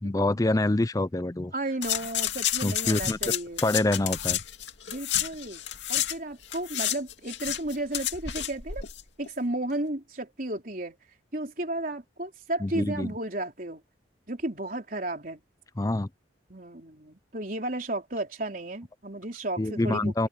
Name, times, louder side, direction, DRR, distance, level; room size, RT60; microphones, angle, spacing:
voice 1, 0.0-1.5 2.6-3.3 3.6-4.4 12.6-13.1 15.8-16.1 19.6-20.3, left 2 dB, 20° left, 0.5 m, -26 dB
voice 2, 1.5-3.6 4.9-5.6 5.9-8.8 9.2-11.0 11.3-13.8 14.3-15.4 16.5-20.3, right 1 dB, 50° right, 4.1 m, -33 dB
sound 1, 1.8-6.2 6.4-9.0 9.3-9.4, left 11 dB, 85° left, 2.4 m, -30 dB
open air
head